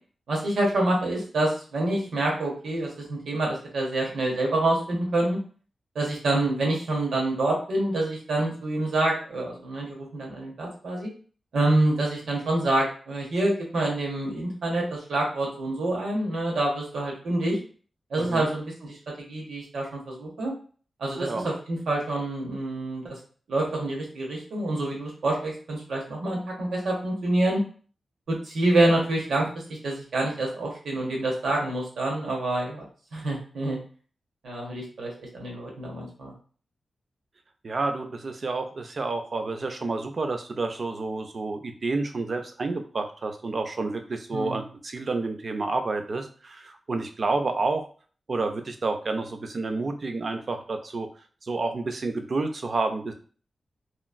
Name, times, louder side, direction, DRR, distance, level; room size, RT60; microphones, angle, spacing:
voice 1, 0.3-5.4 5.9-11.1 11.5-17.6 18.1-20.5 21.0-23.1 23.5-27.6 28.3-29.5 29.8-32.8 33.1-33.8 34.4-36.3 44.3-44.6, right 2 dB, 85° right, -1 dB, 1.1 m, -27 dB
voice 2, 18.2-18.5 21.2-21.5 37.6-47.8 48.3-51.1 51.4-53.1, right 3 dB, 40° right, 6 dB, 0.4 m, -29 dB
3.0 x 2.4 x 2.4 m, 0.41 s
wide cardioid pair, 155°, 0 cm